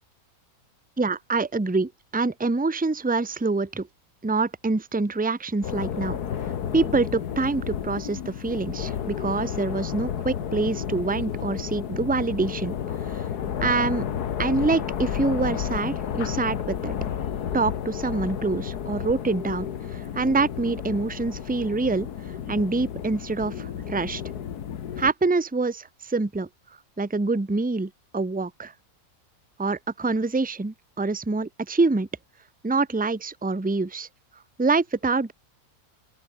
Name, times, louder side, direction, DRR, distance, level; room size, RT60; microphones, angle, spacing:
voice 1, 1.0-3.9 4.2-6.2 6.7-12.8 13.0-13.2 13.6-14.1 14.4-16.9 17.5-19.7 19.9-22.1 22.5-24.2 25.0-26.5 27.0-28.7 29.6-32.1 32.6-34.1 34.6-35.3, right 3 dB, 10° right, 0.7 m, -25 dB
sound 1, 5.6-25.1, left 9 dB, 90° left, 1.8 m, -32 dB
open air
omnidirectional pair, 1.6 m